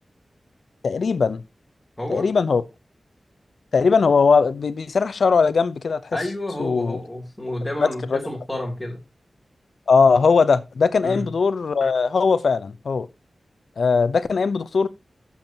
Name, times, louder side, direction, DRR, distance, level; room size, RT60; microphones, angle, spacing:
voice 1, 0.8-1.4 2.1-2.6 3.7-6.2 6.6-7.0 7.8-8.2 9.9-13.1 13.8-14.9, left 5 dB, 80° left, 0.7 m, -19 dB
voice 2, 2.0-2.3 6.1-9.0 11.0-11.3, left 1 dB, 10° left, 3.0 m, -30 dB
12.0 x 7.1 x 2.9 m
wide cardioid pair, 110°, 0 cm